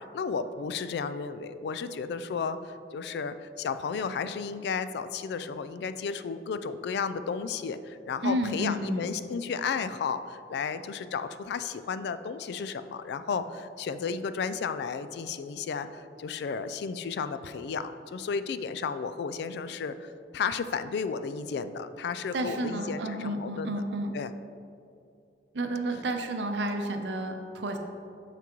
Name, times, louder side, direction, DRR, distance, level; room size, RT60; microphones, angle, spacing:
voice 1, 0.0-23.7 24.1-24.3, left 5 dB, 65° left, 12 dB, 0.3 m, -33 dB
voice 2, 8.2-9.0 22.3-24.2 25.5-27.8, right 1 dB, 75° right, 5 dB, 0.6 m, -31 dB
6.8 x 5.9 x 3.0 m, 2.5 s
head